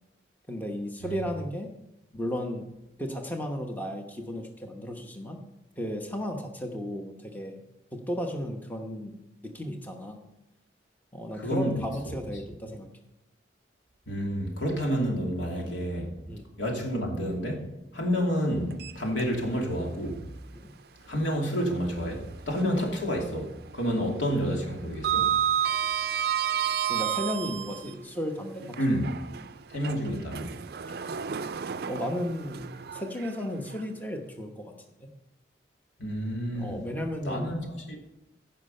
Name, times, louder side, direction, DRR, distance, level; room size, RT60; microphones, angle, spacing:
voice 1, 0.5-1.7 2.1-2.6 3.0-5.4 5.8-7.6 7.9-9.1 9.4-10.2 11.1-12.9 16.3-16.5 20.5-20.8 22.7-22.9 23.9-24.0 26.9-29.0 31.9-34.7 35.0-35.1 36.5-37.5, equal, 10° left, 0.9 m, -34 dB
voice 2, 11.4-12.1 14.1-16.1 16.6-17.7 17.9-20.2 21.1-23.5 23.7-25.3 28.8-29.1 29.7-30.5 36.0-36.8 37.3-38.0, equal, 85° left, 2.8 m, -29 dB
Sliding door, 18.7-19.7 20.1-20.2 21.9-22.9 23.2-23.6 23.8-27.9 28.6-33.8, right 9 dB, 55° right, 0.4 m, -31 dB
15.5 x 5.7 x 5.4 m
head